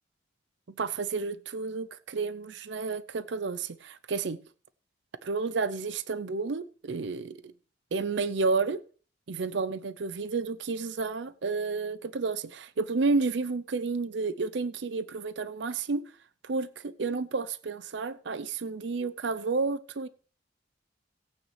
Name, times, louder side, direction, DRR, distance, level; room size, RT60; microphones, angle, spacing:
voice 1, 0.8-4.4 5.2-7.5 7.9-8.8 9.3-16.0 16.4-20.1, right 4 dB, 65° right, 0.5 m, -31 dB
17.5 x 8.8 x 3.2 m
head